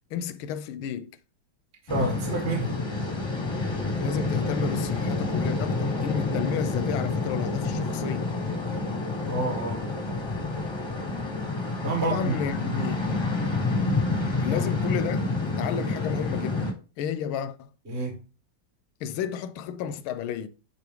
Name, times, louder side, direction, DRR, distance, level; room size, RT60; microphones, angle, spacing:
voice 1, 0.1-1.2 4.0-8.3 12.0-13.3 14.4-16.7 17.0-17.7 19.0-20.5, left 8 dB, 85° left, 1.4 m, -32 dB
sound 1, 1.9-16.7, left 3 dB, 20° left, 0.7 m, -28 dB
voice 2, 1.9-2.8 9.3-9.8 11.8-12.4 14.5-14.6 17.9-18.2, right 3 dB, 35° right, 1.6 m, -29 dB
9.3 x 4.0 x 3.6 m
omnidirectional pair, 2.2 m